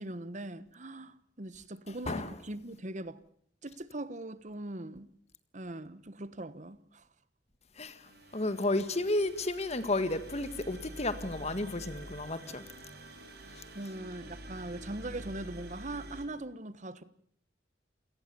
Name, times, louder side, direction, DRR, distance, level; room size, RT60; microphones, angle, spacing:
voice 1, 0.0-3.2 3.6-5.1 5.5-7.1 13.4-17.0, right 1 dB, 40° right, 1.3 m, -41 dB
voice 2, 7.8-12.6, left 2 dB, 35° left, 1.7 m, -32 dB
sound 1, 8.1-16.3, right 1 dB, 60° right, 4.3 m, -48 dB
28.5 x 18.5 x 7.0 m
head